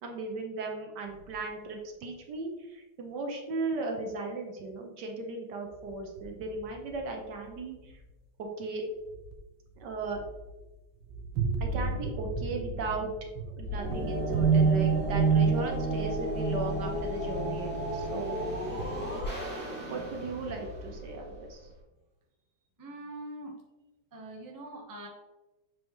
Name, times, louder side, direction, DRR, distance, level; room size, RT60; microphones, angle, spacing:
voice 1, 0.0-8.0 8.4-8.8 9.8-10.2 11.6-13.1 13.5-18.4 19.9-21.7, right 3 dB, 65° right, 3 dB, 1.5 m, -37 dB
sound 1, 1.2-1.3 5.7-8.0 9.1-9.4 9.8-10.6 11.0-18.1 18.4-19.5, right 5 dB, 85° right, 1.6 m, -30 dB
sound 2, 13.6-21.8, equal, 5° left, 1.9 m, -35 dB
voice 2, 22.8-23.5 24.1-25.1, right 1 dB, 15° right, -1 dB, 0.8 m, -43 dB
7.1 x 4.9 x 3.1 m, 1.1 s
omnidirectional pair, 2.1 m